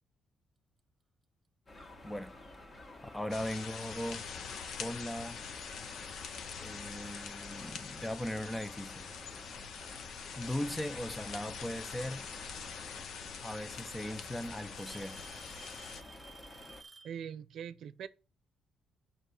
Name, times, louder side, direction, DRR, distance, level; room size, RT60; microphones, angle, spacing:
sound 1, 1.7-16.8, left 1 dB, 35° left, 1.9 m, -52 dB
voice 1, 2.0-2.4 3.1-4.2 4.8-5.4 6.6-9.1 10.4-12.3 13.4-15.2, left 1 dB, 10° left, 0.6 m, -38 dB
Alarm / Tick-tock, 3.2-3.5 4.3-4.4 5.2-5.3 7.0-7.1 8.3-8.4 9.7-10.1 11.9-12.0 13.2-13.3 13.6-14.1 14.8-17.2, right 4 dB, 25° right, 1.0 m, -54 dB
sound 2, 3.3-16.0, left 6 dB, 70° left, 0.9 m, -44 dB
voice 2, 17.0-18.1, right 8 dB, 70° right, 0.7 m, -42 dB
7.8 x 5.5 x 6.5 m
cardioid pair, 90°, 0 cm